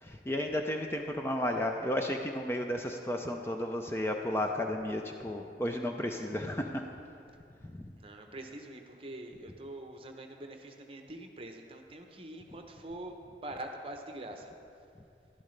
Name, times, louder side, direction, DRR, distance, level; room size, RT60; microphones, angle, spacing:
voice 1, 0.0-6.8 7.6-7.9, left 1 dB, 15° left, 3 dB, 0.4 m, -33 dB
voice 2, 8.0-14.5, right 1 dB, 30° right, 4 dB, 0.8 m, -44 dB
12.0 x 11.5 x 3.3 m, 2.5 s
head